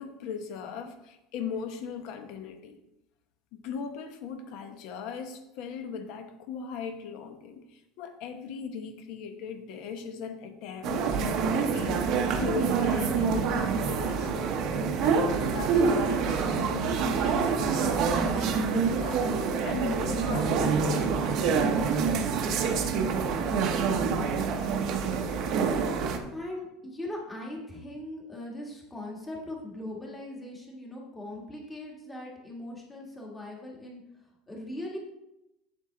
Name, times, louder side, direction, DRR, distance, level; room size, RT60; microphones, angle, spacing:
voice 1, 0.0-2.8 3.5-14.3 15.0-22.0, left 6 dB, 50° left, 7 dB, 0.9 m, -38 dB
sound 1, 10.8-26.2, right 5 dB, 40° right, 0.8 m, -26 dB
voice 2, 26.3-34.0 34.5-35.0, left 1 dB, 10° left, -1 dB, 1.4 m, -40 dB
7.6 x 7.3 x 3.8 m, 0.90 s
cardioid pair, 175°, 0 cm